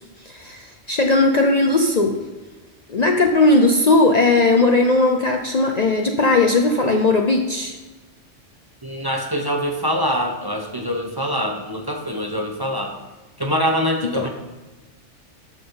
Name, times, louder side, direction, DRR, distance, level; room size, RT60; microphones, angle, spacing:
voice 1, 0.3-2.2 2.9-7.7 14.2-14.3, left 2 dB, 40° left, 3 dB, 0.7 m, -17 dB
voice 2, 8.8-13.0 13.4-14.3, equal, 20° right, 1 dB, 0.9 m, -24 dB
12.5 x 6.1 x 3.8 m, 1.2 s
omnidirectional pair, 1.2 m